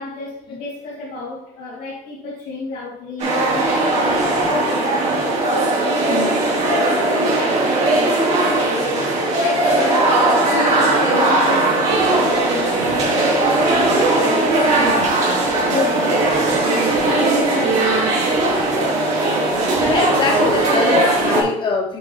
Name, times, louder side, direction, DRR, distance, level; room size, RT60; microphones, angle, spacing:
voice 1, 0.0-6.2 6.6-12.7 13.8-14.1 15.0-15.1 15.6-16.8 17.1-18.4 18.8-18.9, left 2 dB, 70° left, -7 dB, 3.1 m, -31 dB
sound 1, 3.2-21.4, right 2 dB, 55° right, 3.1 m, -18 dB
voice 2, 6.1-6.5 19.8-22.0, left 4 dB, 35° left, 1 dB, 1.7 m, -22 dB
8.2 x 4.6 x 4.4 m, 0.70 s
cardioid pair, 170°, 14 cm